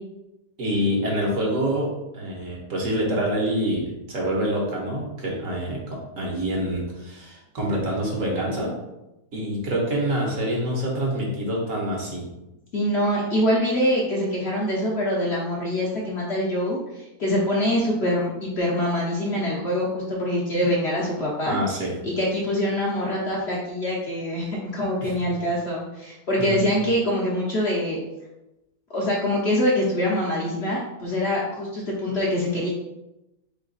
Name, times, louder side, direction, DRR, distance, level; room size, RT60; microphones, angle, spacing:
voice 1, 0.6-1.9 2.1-8.7 9.3-12.3 21.5-21.9 25.0-25.3 26.4-26.6, right 1 dB, 60° right, -2 dB, 1.3 m, -26 dB
voice 2, 12.7-21.6 22.0-28.0 28.9-32.7, left 1 dB, 55° left, -4 dB, 0.8 m, -24 dB
3.5 x 3.2 x 3.9 m, 0.96 s
omnidirectional pair, 1.7 m